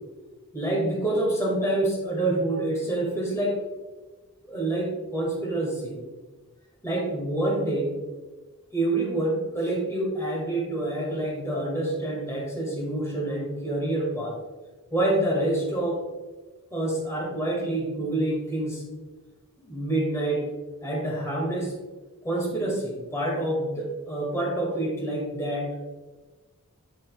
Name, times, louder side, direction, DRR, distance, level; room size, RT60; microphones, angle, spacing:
voice 1, 0.5-3.5 4.5-6.0 6.8-7.9 8.7-14.3 14.9-16.0 16.7-18.8 19.6-20.4 20.8-21.7 22.2-25.7, right 1 dB, 15° left, -3 dB, 1.9 m, -27 dB
11.5 x 4.3 x 2.3 m, 1.2 s
head